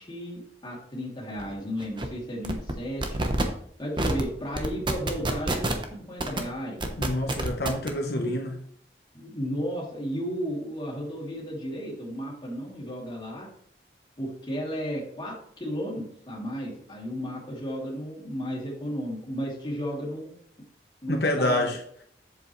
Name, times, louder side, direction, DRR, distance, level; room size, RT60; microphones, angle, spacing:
voice 1, 0.0-3.2 3.8-6.8 8.0-8.3 9.1-13.5 14.2-20.3 21.0-21.7, equal, 25° left, -4 dB, 2.7 m, -34 dB
sound 1, 1.4-1.5 1.8-2.1 2.4-2.7 3.0-3.4 4.0-4.2 4.5-5.8 6.2-6.4 6.8-7.9, right 1 dB, 25° right, 0.9 m, -27 dB
voice 2, 7.0-8.5 21.1-22.0, left 1 dB, 70° left, 2 dB, 0.9 m, -27 dB
8.0 x 7.3 x 3.1 m, 0.66 s
head